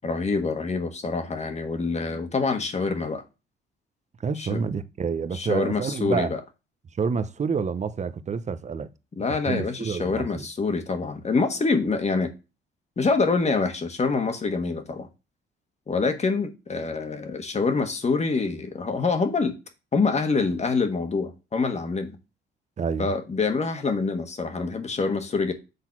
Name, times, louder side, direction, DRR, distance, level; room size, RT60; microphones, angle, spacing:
voice 1, 0.0-3.2 4.4-4.6 5.3-6.4 9.2-12.3 13.0-15.1 15.9-19.5 19.9-22.2 23.0-25.5, left 4 dB, 35° left, 1.4 m, -26 dB
voice 2, 4.2-6.3 7.0-8.9 9.5-10.4 22.8-23.1, right 5 dB, 35° right, 0.8 m, -28 dB
6.6 x 4.0 x 5.9 m
cardioid pair, 90°, 20 cm